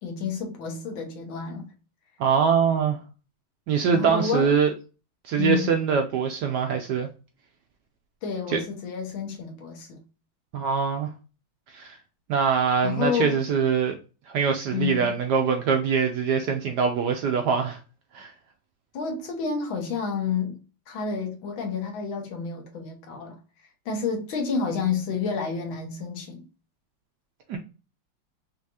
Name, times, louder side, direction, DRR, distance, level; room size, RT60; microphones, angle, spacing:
voice 1, 0.0-1.7 3.9-4.5 5.4-5.7 8.2-10.0 12.8-13.4 14.7-15.1 18.9-20.6 20.9-23.4 23.8-26.5, left 6 dB, 75° left, 1.7 m, -29 dB
voice 2, 2.2-3.0 3.7-4.7 5.2-7.1 8.5-8.6 10.5-11.1 11.7-12.0 12.3-14.0 14.3-17.8 18.1-18.3 27.5-27.6, right 6 dB, 70° right, 1.0 m, -23 dB
5.5 x 2.7 x 2.8 m
omnidirectional pair, 2.2 m